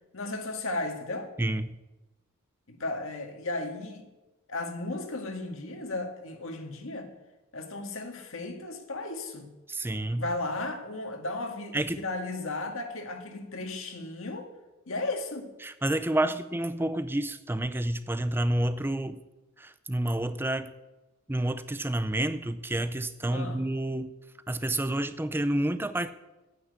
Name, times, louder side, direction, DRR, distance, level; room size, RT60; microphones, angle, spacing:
voice 1, 0.1-1.3 2.7-4.1 4.5-7.1 7.5-9.5 10.2-14.5 14.9-15.5 16.2-16.3 23.3-23.6, left 2 dB, 65° left, 5 dB, 1.9 m, -35 dB
voice 2, 1.4-1.7 9.7-10.2 11.7-12.1 15.6-19.2 19.6-20.7 21.3-24.1 24.5-26.1, right 1 dB, 10° right, 12 dB, 0.5 m, -29 dB
9.3 x 8.9 x 9.7 m, 1.1 s
head